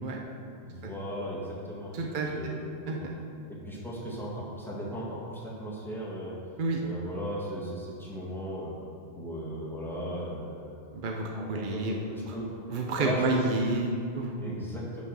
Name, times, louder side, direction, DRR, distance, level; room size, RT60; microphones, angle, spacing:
voice 1, 0.6-2.6 2.9-3.0 3.5-6.4 6.8-8.8 9.1-10.7 11.3-12.5 12.9-13.7 14.4-15.0, equal, ahead, -6 dB, 1.5 m, -36 dB
voice 2, 1.9-2.3 2.9-3.0 6.6-6.8 10.9-12.0 12.3-12.4 12.7-14.6, right 3 dB, 50° right, 0 dB, 0.7 m, -30 dB
6.0 x 5.8 x 6.1 m, 2.4 s
omnidirectional pair, 1.2 m